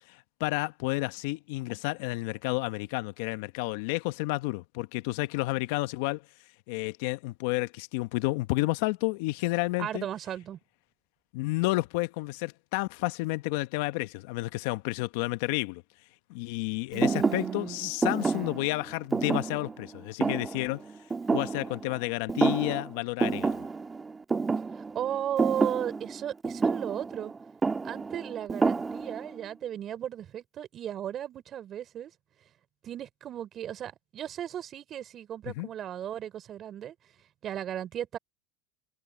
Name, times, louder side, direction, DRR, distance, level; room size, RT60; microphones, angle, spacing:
voice 1, 0.1-6.2 6.7-10.0 11.3-15.8 16.3-20.8 21.3-23.7 35.6-35.7, left 22 dB, 70° left, 1.1 m, -31 dB
voice 2, 9.8-10.6 16.9-17.9 18.2-18.6 24.9-27.3 27.8-32.1 32.8-36.9 37.4-38.2, right 10 dB, 40° right, 4.5 m, -35 dB
Thump thud, 17.0-22.0 22.3-22.9 23.2-29.3, right 4 dB, 20° right, 1.8 m, -29 dB
hypercardioid pair, 105°, 0 cm